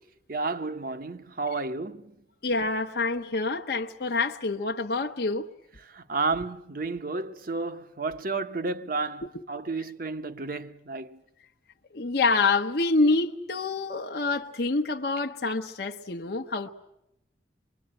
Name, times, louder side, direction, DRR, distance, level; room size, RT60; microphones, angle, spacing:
voice 1, 0.3-2.2 5.8-11.2, right 3 dB, 50° right, 0.9 m, -32 dB
voice 2, 2.4-5.5 11.9-16.7, left 3 dB, 55° left, 0.9 m, -27 dB
25.0 x 22.5 x 8.8 m
head